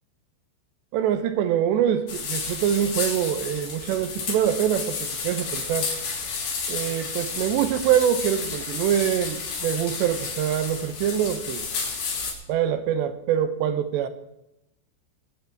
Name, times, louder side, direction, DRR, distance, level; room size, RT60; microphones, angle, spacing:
voice 1, 0.9-5.9 6.7-11.7 12.5-14.1, right 10 dB, 75° right, 3.0 m, -24 dB
sound 1, 2.1-12.3, left 5 dB, 75° left, 5.4 m, -31 dB
22.0 x 8.6 x 4.6 m
omnidirectional pair, 5.3 m